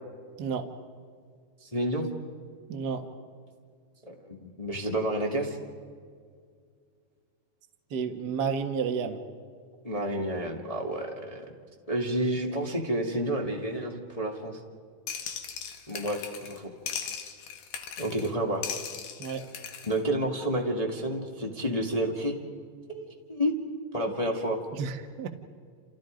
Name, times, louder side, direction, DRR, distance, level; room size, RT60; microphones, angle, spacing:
voice 1, 1.6-2.1 4.1-5.6 9.8-11.4 11.9-14.6 15.9-16.7 18.0-18.6 19.8-22.3 22.9-23.5 23.9-24.6, right 1 dB, 15° left, 0 dB, 1.3 m, -30 dB
voice 2, 2.7-3.0 7.9-9.2 19.2-19.4 24.7-25.3, right 6 dB, 45° right, 4 dB, 1.3 m, -31 dB
sound 1, 15.1-16.6 16.9-18.3 18.6-20.0, left 7 dB, 65° left, 3.2 m, -38 dB
29.0 x 29.0 x 5.2 m, 2.1 s
omnidirectional pair, 4.2 m